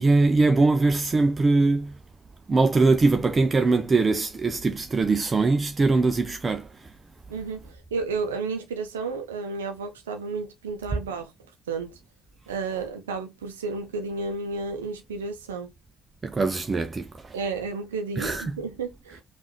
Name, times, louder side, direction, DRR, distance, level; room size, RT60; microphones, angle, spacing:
voice 1, 0.0-1.9 2.5-6.9 16.2-17.4 18.2-18.6, right 3 dB, 30° right, 0.4 m, -22 dB
voice 2, 7.3-11.3 11.7-12.0 12.5-15.7 17.3-19.2, right 4 dB, 80° right, 0.5 m, -32 dB
5.4 x 2.4 x 3.1 m
figure-of-eight pair, 50°, 0 cm